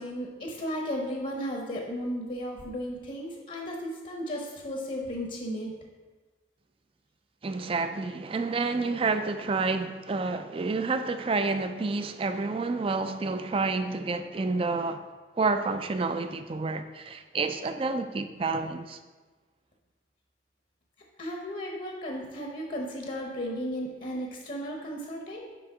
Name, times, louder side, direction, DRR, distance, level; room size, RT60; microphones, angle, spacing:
voice 1, 0.0-5.7 21.2-25.6, equal, 45° left, 0.9 m, -35 dB
voice 2, 7.4-15.0 15.4-19.0, right 3 dB, 30° right, 0.3 m, -29 dB
6.1 x 5.0 x 4.8 m
head